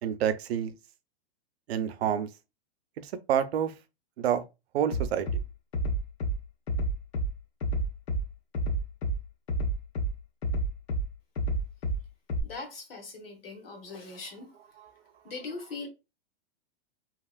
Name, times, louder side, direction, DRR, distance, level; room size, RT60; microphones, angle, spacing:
voice 1, 0.0-0.7 1.7-2.3 3.0-3.7 4.2-4.4 4.7-5.3 14.8-14.9, right 9 dB, 75° right, 0.5 m, -28 dB
Bass drum, 4.9-5.4 5.7-6.3 6.7-7.3 7.6-8.2 8.5-9.1 9.5-10.1 10.4-11.0 11.4-12.0 12.3-12.4, right 1 dB, 90° left, 0.8 m, -28 dB
voice 2, 12.4-14.5 15.2-15.9, left 3 dB, 65° left, 1.0 m, -40 dB
2.9 x 2.8 x 2.3 m
supercardioid pair, 180°, 32 cm